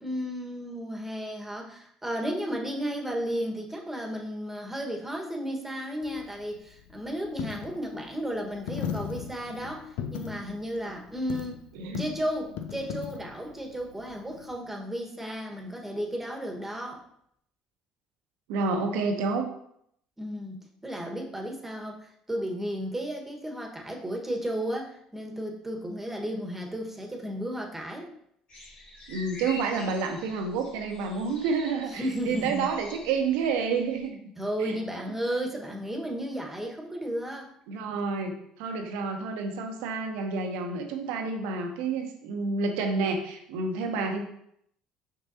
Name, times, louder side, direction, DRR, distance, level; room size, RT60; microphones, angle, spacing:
voice 1, 0.0-11.7 12.0-17.0 20.2-28.1 31.9-32.7 34.4-37.5, equal, 10° right, 1 dB, 1.6 m, -34 dB
Coin (dropping), 6.0-14.6, left 8 dB, 70° left, 0.5 m, -39 dB
voice 2, 18.5-19.5 29.1-34.3 34.6-34.7 37.7-44.2, right 4 dB, 75° right, 4 dB, 1.0 m, -29 dB
sound 1, 28.5-34.1, left 1 dB, 50° left, 2.0 m, -46 dB
6.3 x 5.9 x 2.8 m, 0.72 s
hypercardioid pair, 60°, 3 cm